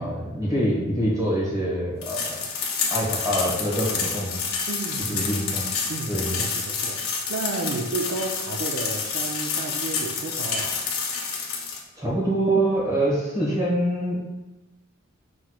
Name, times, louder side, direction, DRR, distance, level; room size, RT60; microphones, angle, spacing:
voice 1, 0.0-2.4 2.9-4.4 5.1-5.7 6.1-6.4 12.0-14.2, right 1 dB, 15° right, -5 dB, 1.1 m, -25 dB
sound 1, 2.0-11.8, left 5 dB, 85° left, 0.7 m, -29 dB
voice 2, 4.7-5.3 5.9-7.0 7.3-10.8, right 3 dB, 65° right, 0 dB, 0.4 m, -32 dB
5.9 x 3.1 x 2.3 m, 1.0 s
head